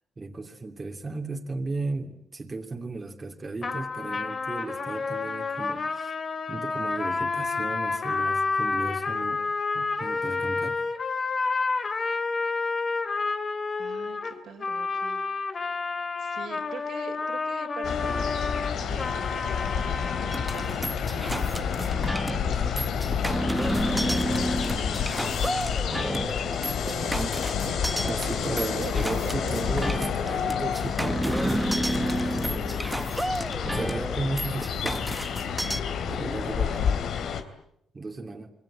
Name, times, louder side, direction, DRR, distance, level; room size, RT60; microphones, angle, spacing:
voice 1, 0.2-6.1 6.5-9.4 9.7-10.8 27.1-27.3 28.0-31.7 33.7-35.0 36.1-36.9 37.9-38.5, right 3 dB, 25° right, 3 dB, 2.7 m, -35 dB
sound 1, 3.6-20.8, left 4 dB, 40° left, 2.7 m, -30 dB
voice 2, 13.8-15.2 16.2-18.4 18.7-23.8 24.0-24.8 26.7-27.3 27.7-30.2, right 6 dB, 65° right, 5 dB, 3.9 m, -44 dB
sound 2, 17.8-37.4, left 7 dB, 70° left, 3.2 m, -29 dB
sound 3, 20.3-35.8, right 1 dB, 5° right, 1.3 m, -31 dB
27.5 x 23.0 x 8.8 m, 0.73 s
cardioid pair, 90°, 0 cm